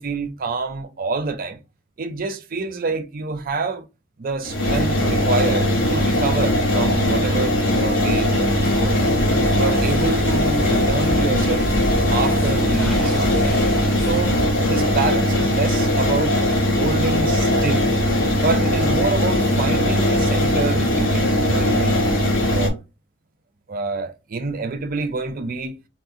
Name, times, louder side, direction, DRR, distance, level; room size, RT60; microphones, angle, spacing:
voice 1, 0.0-1.6 2.0-3.8 4.2-9.0 9.5-11.7 12.1-13.5 14.0-16.4 16.8-18.0 18.3-22.8 23.7-25.8, right 3 dB, 45° right, 0.5 m, -27 dB
sound 1, 4.4-22.7, left 1 dB, 75° left, 0.9 m, -20 dB
sound 2, 8.5-14.5, equal, 50° left, 0.9 m, -29 dB
Gurgling, 12.6-14.8, equal, ahead, 0.5 m, -35 dB
4.1 x 2.1 x 2.5 m
head